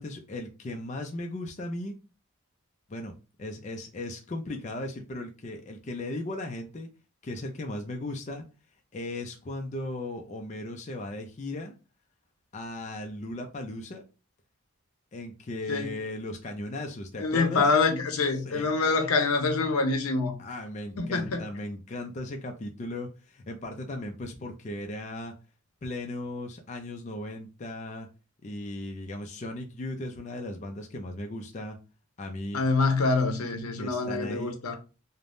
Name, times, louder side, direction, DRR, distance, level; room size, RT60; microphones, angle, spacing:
voice 1, 0.0-1.9 2.9-3.1 3.4-6.9 7.2-8.4 8.9-11.8 12.5-14.0 15.1-17.7 18.3-18.7 20.4-25.3 25.8-28.1 28.4-31.8 32.2-32.6 33.7-34.6, left 1 dB, 35° left, 0.3 m, -37 dB
voice 2, 17.2-20.4 21.0-21.4 32.5-34.8, left 4 dB, 90° left, 0.6 m, -25 dB
3.3 x 2.1 x 2.5 m
head